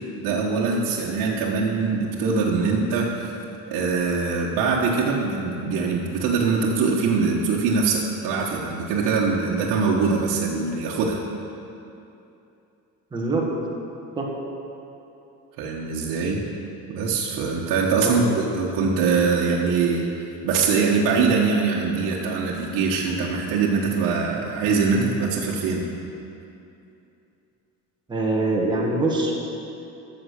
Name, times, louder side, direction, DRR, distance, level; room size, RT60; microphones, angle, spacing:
voice 1, 0.2-3.4 3.7-11.2 15.6-16.4 16.9-20.1 20.4-25.8, right 4 dB, 75° right, -5 dB, 1.4 m, -23 dB
voice 2, 13.1-13.5 14.1-14.3 18.0-18.4 24.8-25.1 28.1-29.3, right 2 dB, 15° right, -3 dB, 1.6 m, -24 dB
13.5 x 7.2 x 6.5 m, 2.8 s
cardioid pair, 170°, 33 cm